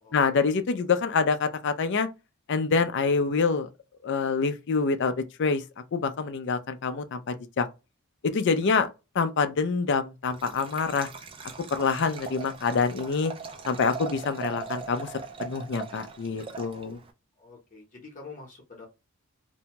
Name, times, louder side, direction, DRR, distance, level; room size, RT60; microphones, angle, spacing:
voice 1, 0.1-2.1 2.5-3.7 4.0-5.1 5.4-5.6 5.9-7.7 8.3-8.9 9.1-11.1 11.7-13.3 13.7-15.1 15.4-17.0, left 5 dB, 55° left, 0.4 m, -26 dB
Liquid, 10.3-17.1, right 5 dB, 25° right, 0.3 m, -40 dB
voice 2, 17.4-18.9, left 3 dB, 35° left, 0.8 m, -46 dB
2.6 x 2.2 x 2.9 m
head